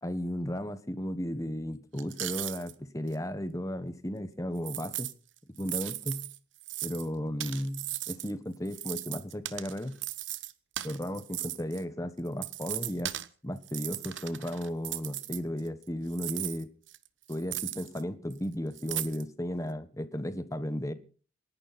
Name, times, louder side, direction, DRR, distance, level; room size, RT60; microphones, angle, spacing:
voice 1, 0.0-5.1 5.6-6.3 6.8-9.9 10.8-13.1 13.4-16.7 17.3-20.9, equal, 15° left, 1.2 m, -35 dB
sound 1, 2.0-2.7 3.1-3.2 4.6-5.1 5.6-7.1 7.4-8.3 8.7-11.8 12.3-13.3 13.6-15.8 16.1-18.0 18.3-18.4 18.8-19.2, right 15 dB, 80° right, 1.0 m, -37 dB
28.0 x 11.0 x 4.2 m
head